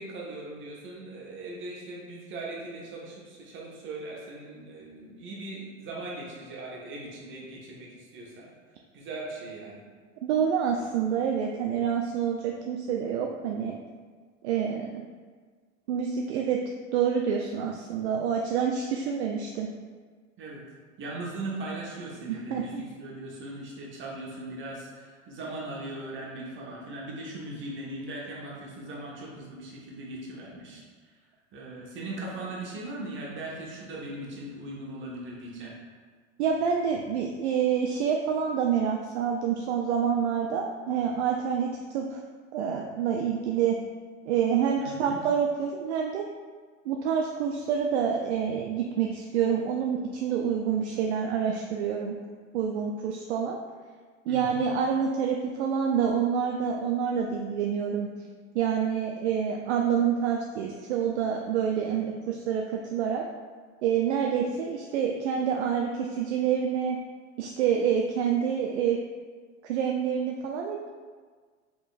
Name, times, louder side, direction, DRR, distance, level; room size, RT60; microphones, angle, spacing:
voice 1, 0.0-8.5 8.9-9.8 20.4-20.6 21.0-30.8 31.5-35.8 44.8-45.2 54.2-54.6, right 2 dB, 30° right, -4 dB, 1.1 m, -39 dB
voice 2, 10.2-13.8 14.4-14.9 15.9-16.6 16.9-19.7 22.3-22.8 36.4-42.2 42.5-43.8 44.3-46.3 46.9-52.2 52.5-53.6 54.3-58.1 58.5-63.2 63.8-67.0 67.4-69.0 69.6-70.9, right 7 dB, 60° right, 1 dB, 0.4 m, -27 dB
5.1 x 3.0 x 2.4 m, 1.5 s
figure-of-eight pair, 80°, 39 cm